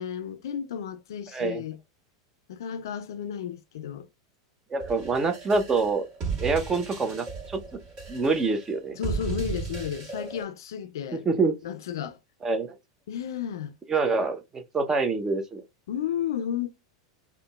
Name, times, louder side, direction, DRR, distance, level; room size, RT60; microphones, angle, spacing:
voice 1, 0.0-1.8 2.5-4.1 9.0-11.2 11.6-12.2 13.1-13.7 15.9-16.7, left 9 dB, 70° left, 0.4 m, -33 dB
voice 2, 4.7-6.0 6.4-7.6 8.1-9.0 11.1-11.6 12.4-12.8 13.9-15.6, right 4 dB, 20° right, 0.7 m, -26 dB
sound 1, 4.8-10.4, right 5 dB, 40° right, 1.7 m, -35 dB
3.7 x 2.2 x 2.2 m
hypercardioid pair, 95°, 2 cm